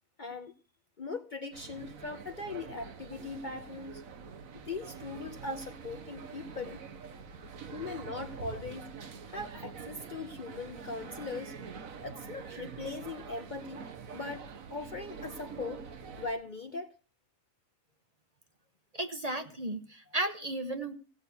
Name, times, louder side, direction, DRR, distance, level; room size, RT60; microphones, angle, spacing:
voice 1, 0.2-0.5 1.0-4.0 4.7-6.8 7.7-8.9 9.3-11.6 12.0-13.9 14.1-15.9 16.2-16.9, left 3 dB, 45° left, 7 dB, 0.8 m, -40 dB
sound 1, 1.5-16.3, right 6 dB, 80° right, 1.5 m, -45 dB
voice 2, 18.9-20.9, right 1 dB, 30° right, 7 dB, 1.0 m, -34 dB
16.5 x 6.3 x 6.9 m, 0.37 s
omnidirectional pair, 1.4 m